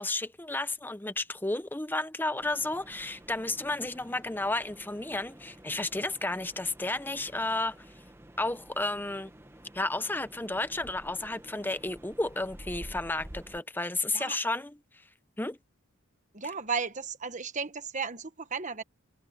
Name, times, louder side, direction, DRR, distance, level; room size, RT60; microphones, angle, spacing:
voice 1, 0.0-7.8 8.4-9.3 9.7-14.7 15.4-15.6, left 2 dB, 10° left, 0.7 m, -32 dB
sound 1, 2.4-13.6, right 1 dB, 10° right, 1.1 m, -50 dB
voice 2, 16.3-18.8, right 5 dB, 35° right, 1.3 m, -34 dB
head